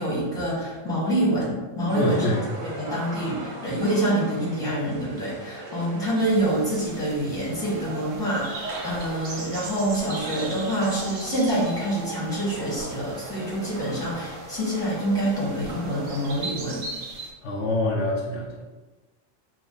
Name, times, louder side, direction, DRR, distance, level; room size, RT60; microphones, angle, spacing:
voice 1, 0.0-16.8, right 1 dB, 5° left, -7 dB, 1.3 m, -26 dB
voice 2, 1.9-2.4 17.4-18.6, left 1 dB, 70° left, -2 dB, 0.9 m, -26 dB
sound 1, 1.9-16.4, right 2 dB, 85° right, 1.1 m, -39 dB
sound 2, 6.2-17.3, right 3 dB, 55° right, 0.8 m, -40 dB
4.6 x 2.4 x 3.8 m, 1.2 s
omnidirectional pair, 1.3 m